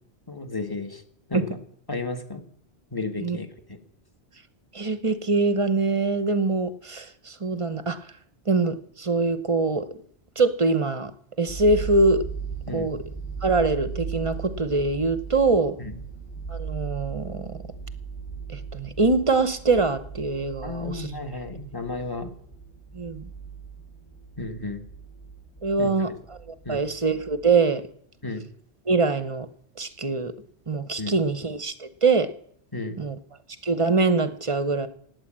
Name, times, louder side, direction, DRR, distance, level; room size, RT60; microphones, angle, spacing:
voice 1, 0.3-1.0 1.3-1.5 1.9-2.4 2.9-3.8 12.7-12.9 15.8-16.0 20.6-22.3 24.4-24.8 25.8-25.9 26.6-26.8 28.2-28.5 31.0-31.2 32.7-33.0, left 3 dB, 20° left, 6 dB, 1.4 m, -33 dB
voice 2, 4.7-8.0 8.5-10.0 10.4-11.1 11.4-12.2 12.7-13.0 13.4-15.8 16.5-17.6 18.5-21.1 22.9-23.3 25.6-27.8 28.9-29.5 29.8-30.3 30.7-32.3 33.0-33.2 33.6-34.9, right 3 dB, 35° right, 12 dB, 0.7 m, -24 dB
sound 1, 11.5-27.6, right 6 dB, 55° left, 6.9 m, -37 dB
17.0 x 9.0 x 7.4 m, 0.68 s
omnidirectional pair, 1.2 m